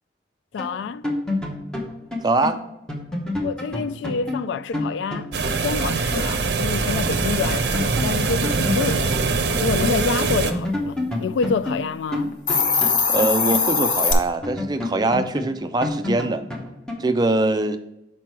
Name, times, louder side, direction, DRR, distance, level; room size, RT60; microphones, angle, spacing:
voice 1, 0.5-1.0 3.4-5.3 5.6-9.1 9.6-12.4, left 5 dB, 80° left, 0.3 m, -27 dB
sound 1, 0.6-6.3 6.6-6.7 7.0-10.0 10.3-14.0 14.4-17.2, left 2 dB, 5° left, 0.9 m, -29 dB
voice 2, 2.2-2.6 13.1-16.4 17.0-17.8, right 2 dB, 20° right, 0.4 m, -22 dB
sound 2, 5.3-10.5, right 4 dB, 70° right, 0.6 m, -23 dB
Hiss, 12.3-14.1, left 5 dB, 45° left, 0.7 m, -20 dB
6.0 x 4.5 x 4.6 m
head